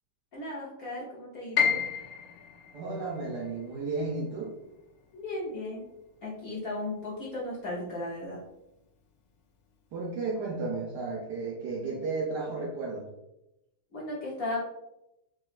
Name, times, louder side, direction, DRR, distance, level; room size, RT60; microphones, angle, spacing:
voice 1, 0.3-1.8 5.1-5.9 6.2-8.4 13.9-14.7, left 2 dB, 55° left, -6 dB, 1.1 m, -36 dB
Piano, 1.6-7.5 7.8-9.0 9.4-9.5 10.2-10.5, left 7 dB, 75° left, 1.7 m, -34 dB
voice 2, 2.7-4.5 9.9-13.1, right 3 dB, 65° right, -3 dB, 1.0 m, -33 dB
4.9 x 3.1 x 2.4 m, 0.88 s
omnidirectional pair, 2.4 m